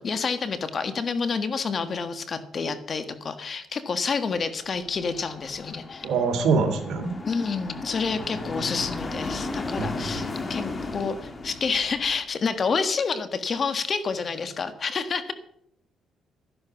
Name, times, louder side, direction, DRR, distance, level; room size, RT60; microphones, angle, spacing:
voice 1, 0.0-6.1 7.2-15.3, left 5 dB, 45° left, 10 dB, 1.6 m, -28 dB
sound 1, 4.8-12.2, left 3 dB, 30° left, 2.2 m, -35 dB
voice 2, 6.0-7.1 8.5-8.7 9.8-9.9, right 5 dB, 75° right, 6 dB, 2.7 m, -24 dB
12.5 x 11.5 x 5.9 m, 0.69 s
cardioid pair, 90°, 0 cm